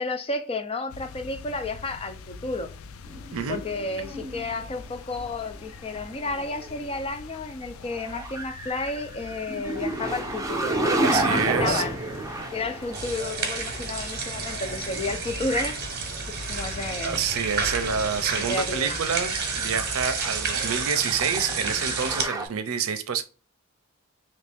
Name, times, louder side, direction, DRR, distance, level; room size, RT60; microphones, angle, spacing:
voice 1, 0.0-2.7 3.5-11.9 12.5-15.8 16.3-17.2 18.2-19.0, left 3 dB, 30° left, 0.6 m, -32 dB
sound 1, 0.9-20.9, left 4 dB, 75° left, 0.4 m, -44 dB
sound 2, 3.0-4.8 5.9-6.9 7.9-15.8 16.3-16.4 18.7-22.5, right 2 dB, 15° right, 0.7 m, -31 dB
voice 2, 11.0-11.8 17.0-23.2, right 6 dB, 80° right, 0.5 m, -28 dB
sound 3, 12.9-22.2, right 5 dB, 50° right, 0.9 m, -30 dB
3.1 x 2.6 x 3.4 m
head